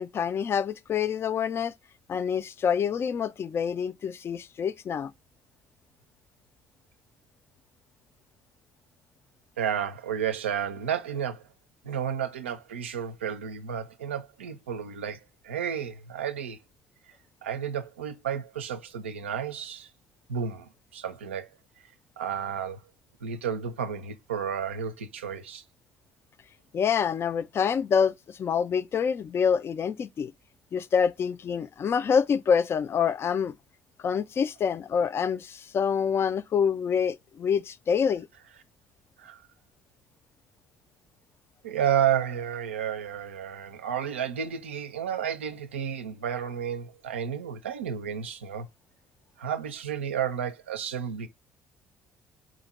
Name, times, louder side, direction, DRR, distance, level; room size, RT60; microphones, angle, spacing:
voice 1, 0.0-1.7 2.1-5.1 26.7-30.3 30.7-33.5 34.0-38.3, left 7 dB, 40° left, 0.3 m, -26 dB
voice 2, 9.6-11.5 11.8-16.6 17.4-19.9 20.3-21.5 22.2-22.8 23.2-25.6 39.2-39.4 41.6-48.7 49.4-51.3, right 8 dB, 85° right, 0.4 m, -31 dB
2.8 x 2.6 x 4.0 m
hypercardioid pair, 55°, 6 cm